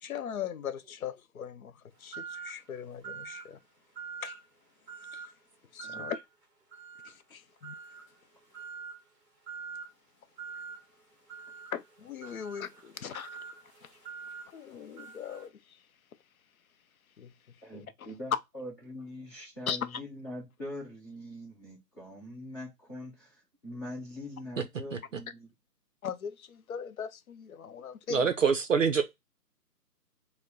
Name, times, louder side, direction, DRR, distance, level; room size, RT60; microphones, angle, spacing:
voice 1, 0.0-3.6 4.2-4.4 5.1-5.3 5.7-6.2 7.0-7.8 11.7-13.4 13.8-14.0 14.5-15.9 17.2-18.4 19.7-20.0 26.0-28.3, left 8 dB, 60° left, 0.5 m, -39 dB
sound 1, 2.1-2.6 3.0-3.5 4.0-4.4 4.9-5.3 5.8-6.2 6.7-7.2 7.6-8.1 8.5-9.0 9.5-9.9 10.4-10.8 11.3-15.5, right 6 dB, 15° right, 1.0 m, -44 dB
voice 2, 17.6-25.5, left 1 dB, 15° left, 0.9 m, -43 dB
voice 3, 28.1-29.0, right 6 dB, 50° right, 0.5 m, -25 dB
4.4 x 2.1 x 3.7 m
figure-of-eight pair, 150°, 49 cm